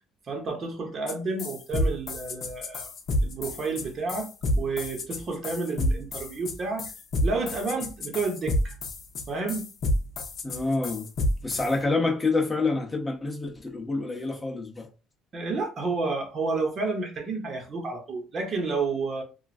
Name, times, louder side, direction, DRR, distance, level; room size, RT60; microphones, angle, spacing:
voice 1, 0.3-2.9 3.2-6.9 7.2-8.8 9.3-9.7 15.3-19.2, right 3 dB, 40° right, 1.0 m, -30 dB
sound 1, 1.1-1.2 1.4-11.7, left 1 dB, 45° left, 0.7 m, -28 dB
voice 2, 10.4-11.1 11.4-14.9, left 3 dB, 15° left, 0.8 m, -27 dB
2.9 x 2.4 x 2.5 m
cardioid pair, 115°, 0 cm